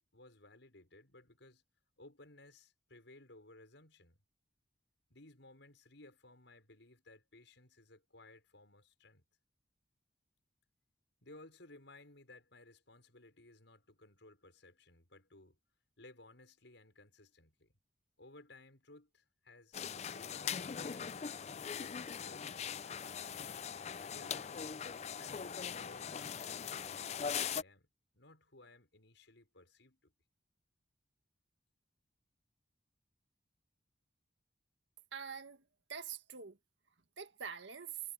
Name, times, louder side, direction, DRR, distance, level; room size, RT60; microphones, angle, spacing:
voice 1, 0.0-1.6 2.0-4.2 5.1-9.2 11.2-15.6 16.0-17.8 18.2-21.1 21.7-23.5 24.0-24.7 25.2-26.6 26.9-27.9 28.1-30.1, left 2 dB, 75° left, 5.7 m, -59 dB
sound 1, 19.7-27.6, left 7 dB, 35° left, 0.3 m, -41 dB
voice 2, 35.1-35.6 35.9-36.6 37.2-38.0, right 7 dB, 80° right, 1.8 m, -45 dB
head